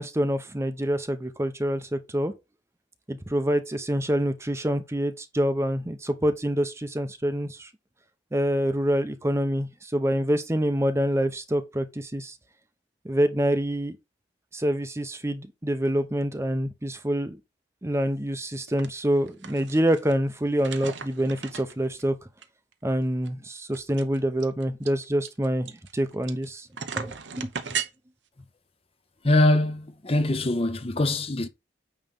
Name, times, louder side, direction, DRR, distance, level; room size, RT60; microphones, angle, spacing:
voice 1, 0.0-2.3 3.1-7.7 8.3-12.4 13.0-14.0 14.5-17.4 17.8-22.2 22.8-26.7 27.0-27.5, equal, 15° right, 0.7 m, -26 dB
sound 1, 18.7-18.9 19.2-20.1 20.6-22.0 22.4-22.5 22.7-22.8 23.2-26.4 26.7-27.9, right 6 dB, 85° right, 0.9 m, -36 dB
voice 2, 29.2-31.5, left 2 dB, 35° left, 0.8 m, -23 dB
9.0 x 3.2 x 5.3 m
head